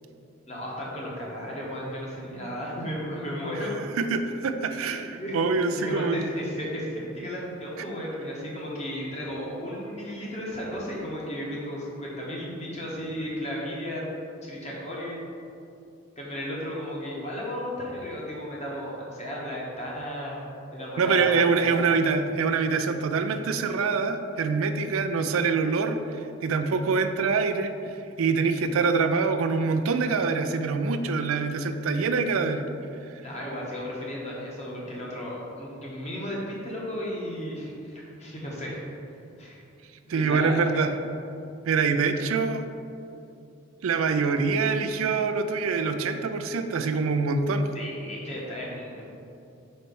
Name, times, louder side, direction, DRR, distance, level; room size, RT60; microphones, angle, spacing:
voice 1, 0.5-3.7 5.1-5.4 5.8-14.0 14.4-15.2 16.2-20.4 20.7-21.9 33.2-38.8 39.4-39.6 40.0-40.9 47.7-49.0, equal, 30° left, -4 dB, 1.1 m, -34 dB
voice 2, 4.0-6.3 21.0-26.0 26.4-32.7 33.1-33.2 40.1-40.9 41.7-42.6 43.8-47.7, right 4 dB, 80° right, 8 dB, 0.4 m, -25 dB
4.4 x 4.2 x 5.3 m, 2.6 s
head